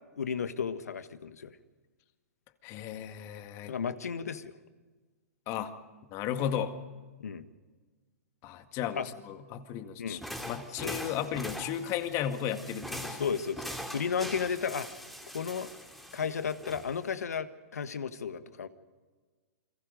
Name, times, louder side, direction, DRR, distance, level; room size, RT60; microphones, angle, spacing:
voice 1, 0.1-1.5 3.7-4.5 7.2-7.5 8.9-9.1 10.0-10.2 10.7-11.1 13.2-13.7 13.9-14.9 15.3-15.7 16.1-18.7, left 6 dB, 80° left, 12 dB, 1.5 m, -33 dB
voice 2, 2.6-3.8 5.5-5.7 6.1-6.8 8.4-10.2 10.5-13.3, left 9 dB, 35° left, 8 dB, 1.9 m, -34 dB
sound 1, 10.1-17.1, equal, ahead, 2.4 m, -42 dB
28.5 x 23.0 x 5.3 m, 1.4 s
hypercardioid pair, 125°, 8 cm